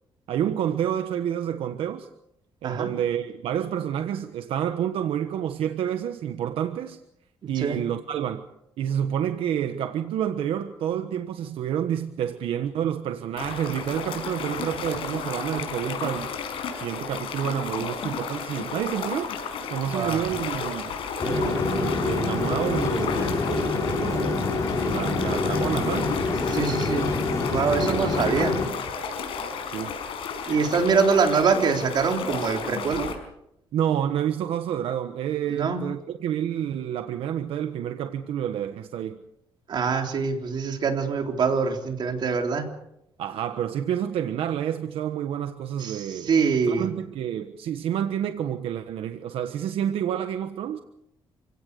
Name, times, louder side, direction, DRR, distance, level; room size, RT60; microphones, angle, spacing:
voice 1, 0.3-2.1 2.6-7.0 7.5-8.5 8.8-16.3 16.8-19.3 19.7-21.0 21.2-26.1 27.7-28.1 29.7-30.0 33.7-39.2 43.2-46.3 46.7-50.8, right 9 dB, 85° right, 1.3 m, -29 dB
voice 2, 7.4-7.8 19.9-20.3 26.5-27.1 27.5-28.5 30.5-33.1 35.5-35.8 39.7-42.7 45.8-46.9, right 5 dB, 55° right, 3.8 m, -24 dB
sound 1, 13.4-33.1, left 6 dB, 75° left, 5.5 m, -33 dB
sound 2, 21.2-28.7, left 3 dB, 35° left, 4.4 m, -26 dB
28.5 x 17.5 x 6.8 m
cardioid pair, 125°, 9 cm